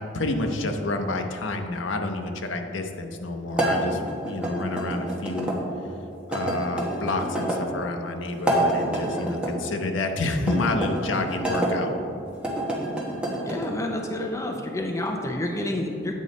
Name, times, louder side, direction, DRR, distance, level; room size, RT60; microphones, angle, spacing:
voice 1, 0.0-5.6 6.3-11.9, left 2 dB, 80° left, 5 dB, 0.7 m, -29 dB
sound 1, 3.5-5.6 6.3-7.6 8.3-9.5 10.4-11.7 12.3-13.7, right 1 dB, 5° right, 1.0 m, -27 dB
voice 2, 13.5-16.1, left 1 dB, 15° left, 2 dB, 0.5 m, -29 dB
8.4 x 5.1 x 4.1 m, 2.6 s
head